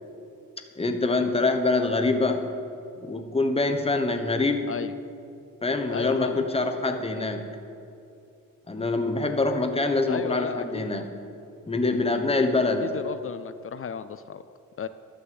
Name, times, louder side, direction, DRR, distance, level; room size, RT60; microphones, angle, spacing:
voice 1, 0.8-2.5 3.0-4.7 5.6-7.5 8.7-11.1 11.7-12.9, left 3 dB, 15° left, 6 dB, 1.0 m, -25 dB
voice 2, 5.9-6.4 10.1-10.8 12.8-14.5 14.8-14.9, left 7 dB, 40° left, 13 dB, 0.4 m, -34 dB
12.0 x 6.6 x 7.8 m, 2.7 s
wide cardioid pair, 115°, 34 cm